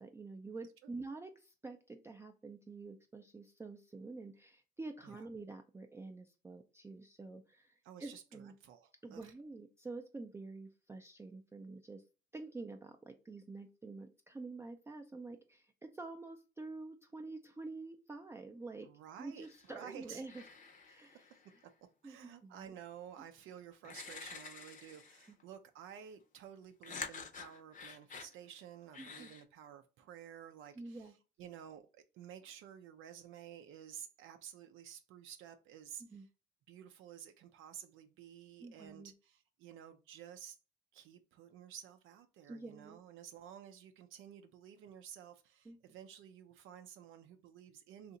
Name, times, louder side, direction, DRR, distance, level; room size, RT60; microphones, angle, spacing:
voice 1, 0.0-8.5 9.0-12.0 12.3-18.9 19.2-20.4 20.9-21.3 22.0-22.2 22.4-22.7 25.3-25.4 29.0-29.3 30.8-31.1 36.1-36.3 38.6-39.1 42.5-43.0 45.7-45.8, right 3 dB, 15° right, 0.4 m, -48 dB
voice 2, 7.8-9.3 18.8-20.2 20.9-21.3 22.0-36.3 36.7-40.6 40.9-48.2, right 9 dB, 85° right, 0.4 m, -53 dB
sound 1, 19.4-19.8 20.2-21.6 23.2-23.3 23.8-25.4 26.8-28.3 28.9-29.4, left 5 dB, 40° left, 0.7 m, -48 dB
2.7 x 2.4 x 3.8 m
cardioid pair, 90°, 20 cm